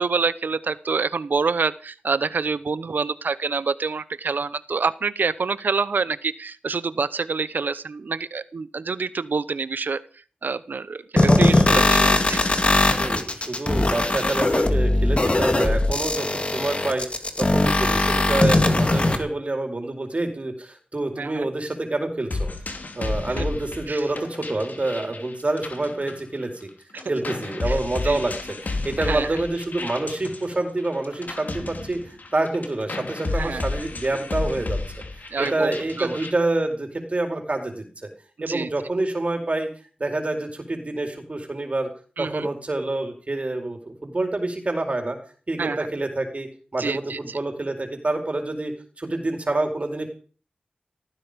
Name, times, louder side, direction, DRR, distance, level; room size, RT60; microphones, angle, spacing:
voice 1, 0.0-10.0 10.4-12.6 21.2-21.5 23.4-23.5 23.9-24.0 26.9-27.0 27.6-27.8 28.0-28.2 29.0-29.3 33.3-33.6 35.3-35.7 36.0-36.2 38.5-38.7 42.2-42.5 45.6-45.9 46.8-47.2, right 4 dB, 80° right, 16 dB, 0.9 m, -27 dB
sound 1, 11.2-19.2, left 2 dB, 40° left, 2.5 m, -20 dB
voice 2, 11.3-12.3 13.0-17.1 17.4-22.5 22.9-26.7 27.1-28.6 28.8-32.0 32.3-34.8 35.4-37.9 38.4-39.7 40.0-41.9 42.2-45.2 45.5-50.1, right 2 dB, 40° right, 4 dB, 4.6 m, -27 dB
sound 2, 22.3-26.7 27.0-36.3, left 3 dB, 65° left, 3.0 m, -32 dB
18.5 x 14.5 x 5.3 m, 0.41 s
wide cardioid pair, 70°, 3 cm